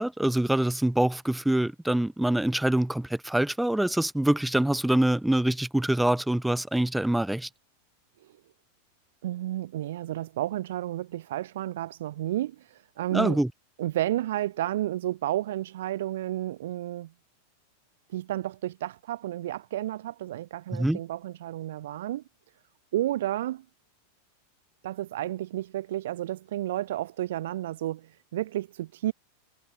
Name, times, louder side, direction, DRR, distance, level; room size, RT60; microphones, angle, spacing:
voice 1, 0.0-7.5 13.1-13.5 20.7-21.0, right 1 dB, 5° right, 0.5 m, -25 dB
voice 2, 9.2-13.4 13.8-17.1 18.1-22.2 22.9-23.6 24.8-29.1, right 13 dB, 55° right, 1.6 m, -31 dB
figure-of-eight pair, 90°, 0 cm